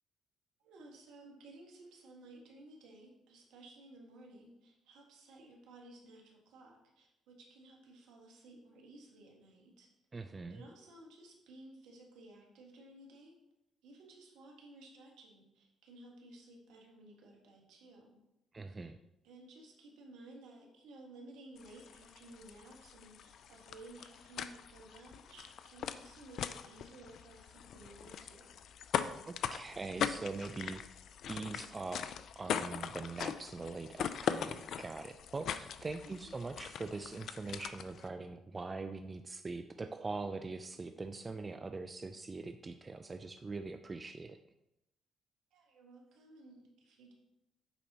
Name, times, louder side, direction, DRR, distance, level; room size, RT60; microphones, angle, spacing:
voice 1, 0.6-9.9 10.5-13.4 13.8-18.2 18.7-18.9 19.2-28.6 36.0-36.4 45.5-47.1, right 2 dB, 75° right, 0 dB, 1.3 m, -56 dB
voice 2, 10.1-10.6 18.5-19.0 29.2-30.8 31.3-44.4, right 3 dB, 30° right, 8 dB, 0.4 m, -42 dB
Breaking Ice, 21.6-38.1, left 8 dB, 65° left, 0.3 m, -41 dB
9.7 x 4.1 x 2.9 m, 0.88 s
hypercardioid pair, 50°, 0 cm